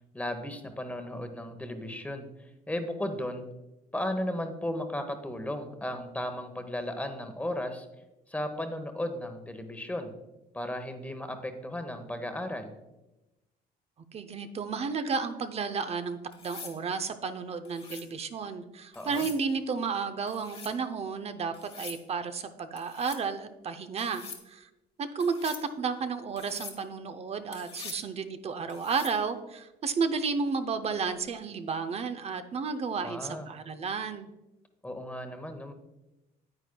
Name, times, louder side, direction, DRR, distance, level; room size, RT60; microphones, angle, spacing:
voice 1, 0.1-3.4 3.9-7.9 8.3-10.1 10.5-12.7 18.9-19.3 33.0-33.5 34.8-35.7, left 1 dB, 10° left, 7 dB, 1.0 m, -35 dB
voice 2, 14.1-24.7 25.0-34.3, right 5 dB, 40° right, 10 dB, 0.6 m, -32 dB
sound 1, 16.3-16.8 17.7-18.1 18.9-19.4 20.3-20.8 21.5-22.0 22.8-23.2 24.0-24.4 25.2-25.7 26.4-26.8 27.5-28.1 28.7-29.2 31.1-31.4, left 5 dB, 35° left, 1.2 m, -44 dB
9.6 x 8.8 x 2.3 m, 0.99 s
cardioid pair, 110°, 17 cm